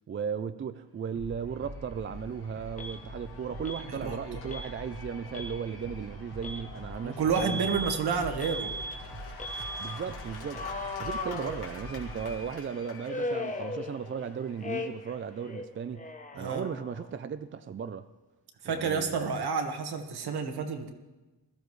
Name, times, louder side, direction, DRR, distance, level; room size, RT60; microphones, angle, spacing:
voice 1, 0.1-7.9 9.8-10.6 11.0-16.1 16.4-18.0 18.6-19.3, right 7 dB, 30° right, 11 dB, 0.4 m, -36 dB
Cheering / Applause / Crowd, 1.0-15.8, left 4 dB, 70° left, 2.4 m, -48 dB
sound 1, 1.1-12.4, right 1 dB, 50° right, 1.3 m, -45 dB
Alarm, 2.8-3.0 3.6-3.9 4.5-4.7 5.2-5.6 6.4-6.6 7.3-8.0 8.4-9.0 9.4-9.9 10.5-12.1 13.1-14.3 14.6-15.2 15.4-17.1, left 1 dB, 20° left, 0.9 m, -37 dB
voice 2, 3.9-4.2 7.0-8.7 16.3-16.6 18.6-20.9, right 5 dB, 70° right, 5 dB, 1.5 m, -30 dB
20.5 x 14.0 x 3.2 m, 1.1 s
wide cardioid pair, 155°, 40 cm